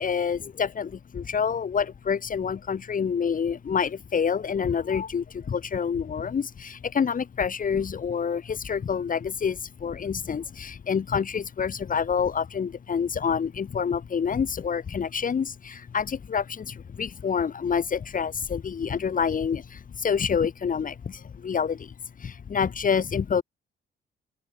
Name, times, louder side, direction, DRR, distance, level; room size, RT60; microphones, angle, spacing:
voice 1, 0.0-23.4, left 6 dB, 45° left, 2.0 m, -27 dB
open air
cardioid pair, 90°, 20 cm